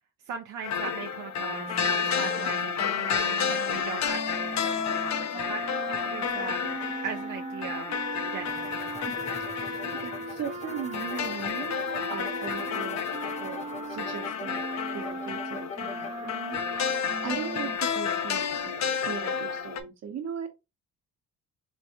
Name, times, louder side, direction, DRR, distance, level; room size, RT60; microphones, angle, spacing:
voice 1, 0.2-8.0 8.3-8.7, right 6 dB, 80° right, 0.6 m, -39 dB
sound 1, 0.6-19.8, left 7 dB, 65° left, 0.6 m, -31 dB
sound 2, 1.5-11.5 11.8-17.8, right 3 dB, 25° right, 0.5 m, -39 dB
sound 3, 8.4-16.1, left 4 dB, 25° left, 0.5 m, -43 dB
voice 2, 9.0-11.8 12.1-13.0 13.4-14.6 14.9-20.5, right 7 dB, 60° right, 1.0 m, -39 dB
3.4 x 3.1 x 2.7 m
cardioid pair, 90°, 30 cm